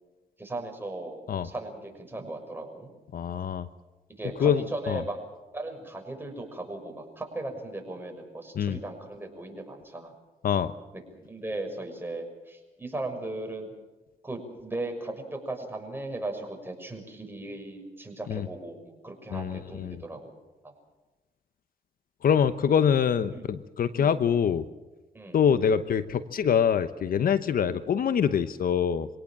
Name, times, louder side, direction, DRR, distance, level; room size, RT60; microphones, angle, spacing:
voice 1, 0.4-2.9 4.2-5.2 5.5-10.1 11.2-13.7 14.2-20.3 20.6-20.7 23.3-23.5 23.9-24.1 25.1-25.4 27.7-27.9, right 2 dB, 15° right, 3 dB, 6.3 m, -37 dB
voice 2, 3.1-3.7 4.4-5.0 8.5-8.8 10.4-10.7 18.3-18.5 19.3-20.0 22.2-24.7 25.3-29.1, left 7 dB, 60° left, 13 dB, 0.9 m, -25 dB
25.0 x 18.0 x 7.5 m, 1.1 s
cardioid pair, 75°, 16 cm